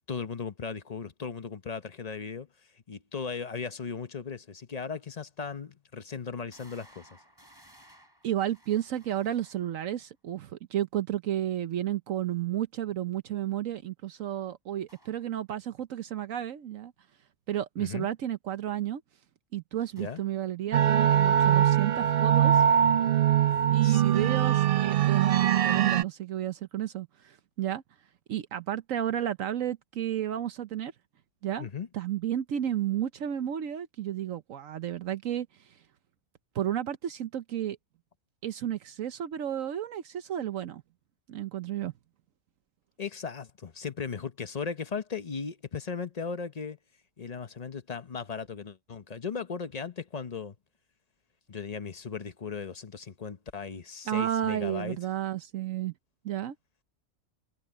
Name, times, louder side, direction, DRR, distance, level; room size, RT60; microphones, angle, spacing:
voice 1, 0.1-2.5 2.9-7.1 17.8-18.1 20.0-20.2 23.8-24.5 31.6-31.9 43.0-46.8 47.2-50.6 51.5-55.0, left 5 dB, 35° left, 0.8 m, -37 dB
sound 1, 5.6-5.7 6.5-9.9 14.9-15.3 20.0-20.5, right 1 dB, 15° right, 7.7 m, -58 dB
voice 2, 8.2-16.9 17.5-19.0 19.5-22.6 23.7-27.8 28.3-30.9 31.4-31.7 31.9-35.5 36.5-37.8 38.4-40.8 41.3-41.9 54.1-55.9 56.2-56.5, right 11 dB, 75° right, 1.2 m, -32 dB
sound 2, 20.7-26.0, right 10 dB, 55° right, 0.7 m, -22 dB
omnidirectional pair, 1.4 m